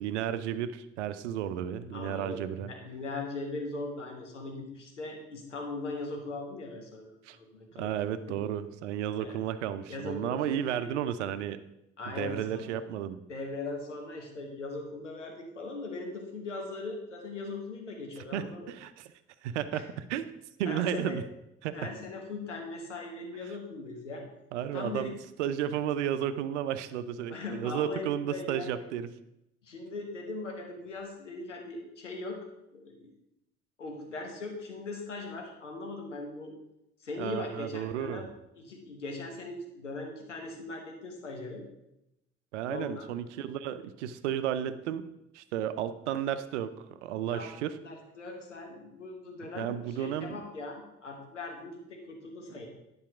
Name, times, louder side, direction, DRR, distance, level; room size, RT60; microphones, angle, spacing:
voice 1, 0.0-2.7 7.3-7.4 7.8-11.6 12.1-13.2 18.3-19.1 19.4-20.3 20.6-21.2 21.6-21.8 24.5-25.1 25.4-29.1 37.2-38.3 42.5-45.0 45.3-47.8 49.5-50.4, right 10 dB, 75° right, 13 dB, 0.6 m, -33 dB
voice 2, 1.9-7.9 8.3-8.4 9.2-9.4 9.9-10.9 12.0-12.7 13.3-18.7 19.7-19.8 20.6-21.2 21.7-24.3 24.7-25.1 27.2-28.8 29.6-32.5 32.7-33.1 33.8-36.5 37.0-38.3 38.6-41.6 42.7-43.1 47.3-52.7, left 3 dB, 90° left, 2 dB, 1.2 m, -40 dB
10.5 x 4.7 x 4.8 m, 0.86 s
figure-of-eight pair, 45°, 35 cm